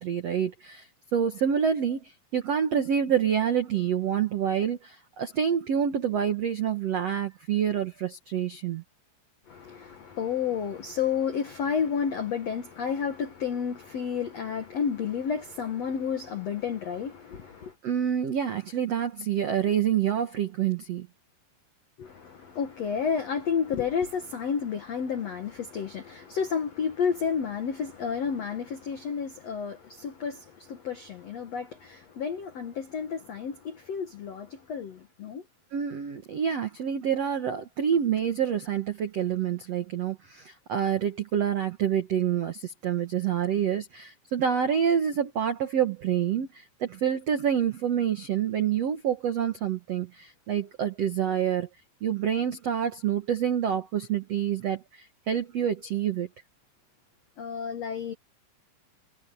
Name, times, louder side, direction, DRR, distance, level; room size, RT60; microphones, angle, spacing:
voice 1, 0.0-8.8 17.8-21.1 35.7-51.7 52.0-56.3, right 8 dB, 90° right, 1.4 m, -27 dB
voice 2, 9.5-17.7 22.0-35.4 57.4-58.1, left 7 dB, 90° left, 1.4 m, -31 dB
omnidirectional pair, 5.2 m